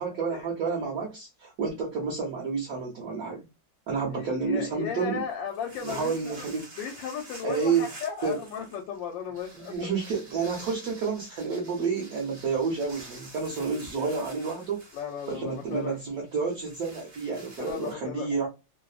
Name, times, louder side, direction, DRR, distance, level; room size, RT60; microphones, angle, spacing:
voice 1, 0.0-3.5 3.9-5.2 5.8-6.7 7.4-7.9 8.2-8.4 9.6-14.8 15.3-18.5, right 5 dB, 65° right, 1.0 m, -30 dB
voice 2, 4.1-6.5 6.8-9.9 14.9-16.0 17.6-18.3, left 7 dB, 85° left, 1.3 m, -35 dB
sound 1, 5.3-17.9, right 2 dB, 45° right, 0.6 m, -48 dB
3.1 x 2.0 x 2.4 m
omnidirectional pair, 2.0 m